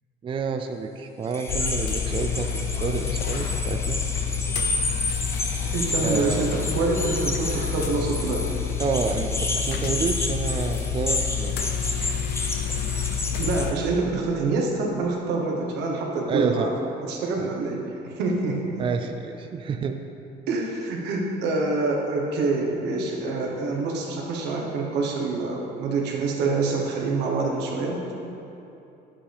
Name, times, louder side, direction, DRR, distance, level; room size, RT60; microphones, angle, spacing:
voice 1, 0.2-4.0 6.0-6.6 8.8-11.6 16.3-16.7 17.4-17.5 18.8-20.0, right 5 dB, 30° right, 5 dB, 0.4 m, -29 dB
sound 1, 1.3-13.6, left 2 dB, 15° left, 0.8 m, -31 dB
sound 2, 1.5-13.7, left 7 dB, 75° left, 0.6 m, -29 dB
voice 2, 5.7-8.5 13.3-16.7 17.0-18.8 20.5-28.1, right 3 dB, 90° right, 0 dB, 1.3 m, -26 dB
9.1 x 7.2 x 3.5 m, 2.9 s
cardioid pair, 110°, 17 cm